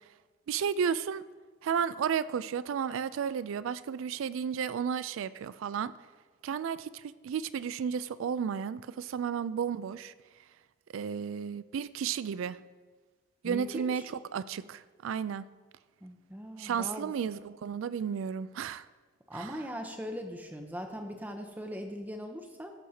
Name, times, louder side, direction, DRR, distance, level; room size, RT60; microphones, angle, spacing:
voice 1, 0.5-1.3 1.6-5.9 6.4-10.1 10.9-12.6 13.4-14.0 14.3-15.5 16.6-18.9 19.3-19.5, right 7 dB, 75° right, 17 dB, 0.3 m, -33 dB
voice 2, 13.4-14.1 16.0-17.1 19.3-22.7, equal, 10° right, 4 dB, 0.6 m, -40 dB
14.0 x 6.4 x 2.8 m, 1.4 s
head